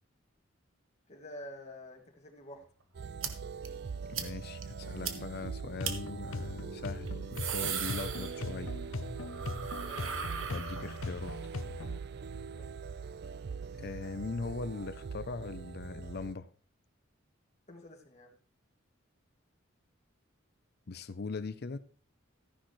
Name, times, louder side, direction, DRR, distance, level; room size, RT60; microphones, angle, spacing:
voice 1, 1.1-2.6 9.8-10.1 12.5-12.7 17.7-18.4, left 1 dB, 35° left, 2.2 m, -48 dB
sound 1, 2.9-16.3, right 5 dB, 55° right, 0.4 m, -42 dB
sound 2, 3.2-3.3 3.6-3.7 4.1-4.3 4.6-4.7 5.0-5.1 5.8-5.9 7.1-8.7 9.0-11.2, right 8 dB, 80° right, 1.4 m, -38 dB
voice 2, 4.1-8.7 10.4-11.4 13.8-16.5 20.9-21.8, left 3 dB, 55° left, 0.6 m, -40 dB
sound 3, 5.7-12.0, left 3 dB, 90° left, 0.7 m, -41 dB
14.0 x 10.0 x 3.2 m
head